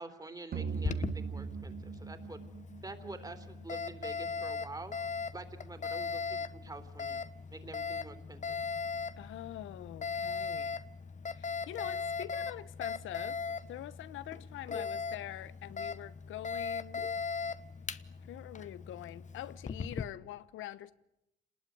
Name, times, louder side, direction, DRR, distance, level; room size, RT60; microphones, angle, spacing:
voice 1, 0.0-2.5 2.8-5.0 5.3-7.2 7.5-8.6, right 2 dB, 20° right, 3.5 m, -47 dB
sound 1, 0.5-3.8, right 5 dB, 50° right, 1.1 m, -39 dB
Alarm, 0.7-20.0, left 5 dB, 40° left, 1.2 m, -39 dB
voice 2, 9.2-10.8 11.3-17.1 18.3-20.9, left 13 dB, 85° left, 1.1 m, -44 dB
28.5 x 20.0 x 9.5 m
cardioid pair, 90°, 20 cm